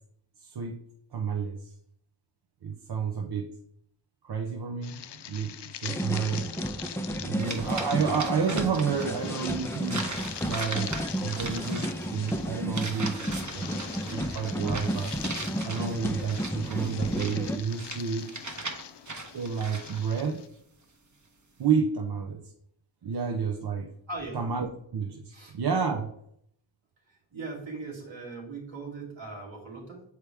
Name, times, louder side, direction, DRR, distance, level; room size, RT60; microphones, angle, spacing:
voice 1, 0.4-0.8 1.1-1.7 2.6-3.5 4.2-6.5 7.3-10.0 10.4-13.7 14.0-15.1 15.6-18.3 19.3-20.4 21.6-22.5 23.0-23.9 24.3-26.1, right 6 dB, 55° right, 4 dB, 0.7 m, -30 dB
sound 1, 4.8-20.5, left 10 dB, 60° left, 0.5 m, -43 dB
sound 2, 5.8-17.6, equal, 5° left, 0.6 m, -32 dB
voice 2, 7.1-7.6 24.1-24.4 25.3-25.5 27.1-30.0, right 3 dB, 75° right, -4 dB, 2.7 m, -40 dB
sound 3, 7.4-9.1 9.4-20.2, right 3 dB, 40° right, 1.1 m, -39 dB
7.1 x 4.8 x 3.4 m, 0.71 s
wide cardioid pair, 70°, 47 cm